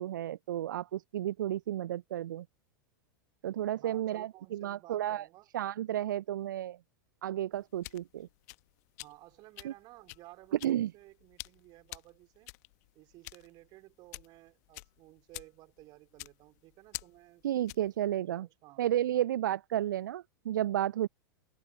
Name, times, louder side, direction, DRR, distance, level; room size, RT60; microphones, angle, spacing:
voice 1, 0.0-2.5 3.4-5.2 5.5-6.8 7.2-8.3 9.6-9.7 10.6-10.9 17.4-18.5 18.8-21.1, right 12 dB, 65° right, 0.5 m, -32 dB
voice 2, 3.7-5.5 9.0-12.5 12.9-17.4 17.8-19.2, right 19 dB, 40° right, 4.2 m, -56 dB
sound 1, 7.5-18.0, left 24 dB, 50° left, 1.1 m, -49 dB
figure-of-eight pair, 95°, 11 cm